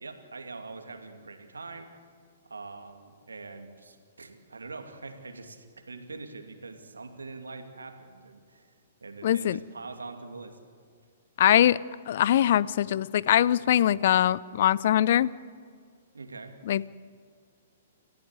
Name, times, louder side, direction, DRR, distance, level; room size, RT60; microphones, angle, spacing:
voice 1, 0.0-1.9 2.4-8.7 9.0-10.6 16.1-16.6, right 3 dB, 80° right, 6 dB, 2.5 m, -43 dB
voice 2, 9.2-9.6 11.4-11.8 12.1-15.3 16.7-16.9, left 11 dB, 55° left, 21 dB, 0.6 m, -22 dB
28.5 x 15.5 x 8.1 m, 2.1 s
figure-of-eight pair, 115°, 0 cm